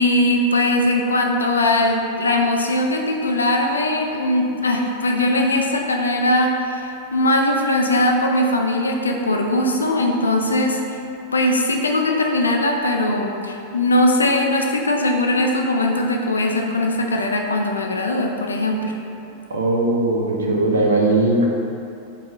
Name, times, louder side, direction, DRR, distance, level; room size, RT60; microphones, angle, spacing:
voice 1, 0.0-10.8 11.3-18.9, left 1 dB, 75° left, 2 dB, 0.3 m, -20 dB
voice 2, 19.5-21.4, right 2 dB, 70° right, -1 dB, 0.5 m, -19 dB
4.5 x 2.8 x 2.5 m, 2.8 s
figure-of-eight pair, 90°, 0 cm